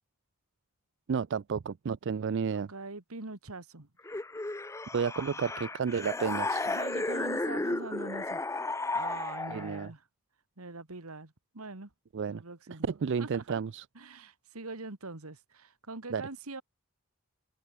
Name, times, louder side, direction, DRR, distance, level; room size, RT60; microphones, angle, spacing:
voice 1, 1.1-2.7 4.9-6.7 9.5-9.9 12.1-12.4 12.9-13.8 16.1-16.2, right 6 dB, 55° right, 0.4 m, -31 dB
voice 2, 2.5-3.9 6.7-8.4 8.9-10.0 10.6-11.9 12.3-12.9 13.2-13.6 13.9-16.6, right 3 dB, 85° right, 2.2 m, -43 dB
sound 1, 4.1-9.9, left 2 dB, 15° left, 0.6 m, -34 dB
head